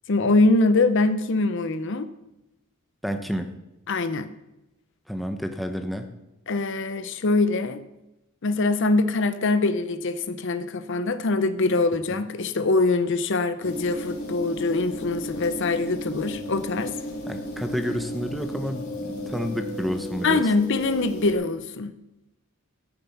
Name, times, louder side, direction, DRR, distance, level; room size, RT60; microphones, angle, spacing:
voice 1, 0.1-2.1 3.9-4.3 6.5-7.8 8.4-16.9 20.2-21.9, left 3 dB, 60° left, 0.6 m, -23 dB
voice 2, 3.0-3.5 5.1-6.1 12.1-12.2 17.3-20.5, equal, ahead, 0.8 m, -30 dB
sound 1, 13.6-21.3, left 1 dB, 90° left, 2.8 m, -34 dB
13.5 x 6.8 x 5.8 m
head